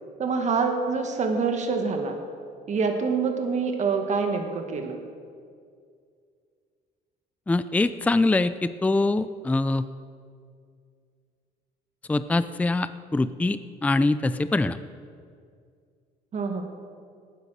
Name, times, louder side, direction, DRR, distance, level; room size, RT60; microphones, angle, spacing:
voice 1, 0.2-2.2 2.7-5.0 16.3-16.6, right 5 dB, 45° right, 4 dB, 2.0 m, -26 dB
voice 2, 7.5-9.9 12.1-14.8, left 2 dB, 10° left, 13 dB, 0.4 m, -24 dB
18.0 x 10.0 x 6.5 m, 2.2 s
cardioid pair, 110°, 17 cm